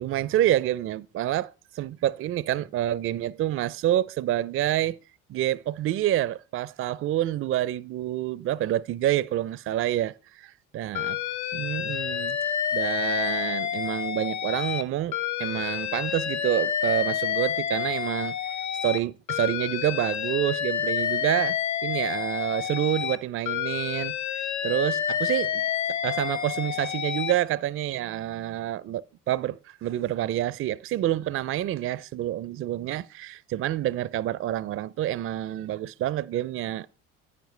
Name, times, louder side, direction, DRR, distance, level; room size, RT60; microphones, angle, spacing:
voice 1, 0.0-5.0 5.3-11.2 11.5-12.4 12.7-18.4 18.8-21.6 21.8-24.1 24.6-36.9, right 13 dB, 35° right, 0.4 m, -28 dB
Alarm, 10.9-14.8 15.1-19.0 19.3-23.2 23.4-27.3, left 9 dB, 45° left, 0.9 m, -29 dB
9.6 x 8.9 x 3.2 m
hypercardioid pair, 65°, 42 cm